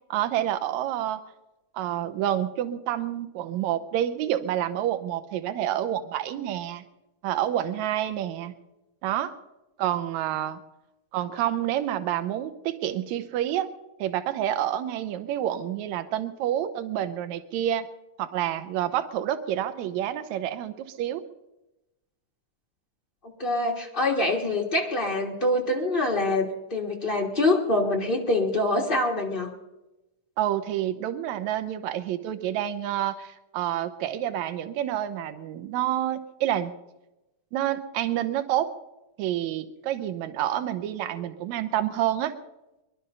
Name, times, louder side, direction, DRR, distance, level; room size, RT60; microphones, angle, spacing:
voice 1, 0.1-1.2 1.7-6.8 7.2-8.5 9.0-9.3 9.8-10.6 11.1-13.7 14.0-17.9 18.2-21.2 30.4-36.7 37.5-38.7 39.2-42.3, right 11 dB, 75° right, 10 dB, 2.1 m, -28 dB
voice 2, 23.4-29.5, left 2 dB, 60° left, 0 dB, 0.5 m, -25 dB
22.0 x 12.0 x 5.4 m, 0.97 s
omnidirectional pair, 3.6 m